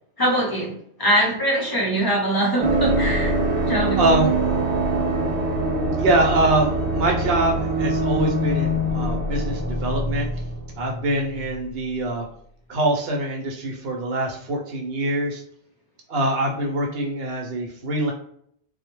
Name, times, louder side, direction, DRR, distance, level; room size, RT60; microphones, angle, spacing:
voice 1, 0.2-3.4 3.7-4.0, right 1 dB, 30° left, -2 dB, 0.4 m, -22 dB
sound 1, 2.6-11.1 11.4-11.5, right 1 dB, 50° right, 0.5 m, -23 dB
voice 2, 4.0-4.3 6.0-10.3 10.8-12.3 12.7-15.4 16.1-18.1, right 2 dB, 65° right, 1 dB, 0.9 m, -24 dB
2.2 x 2.1 x 3.0 m, 0.66 s
omnidirectional pair, 1.1 m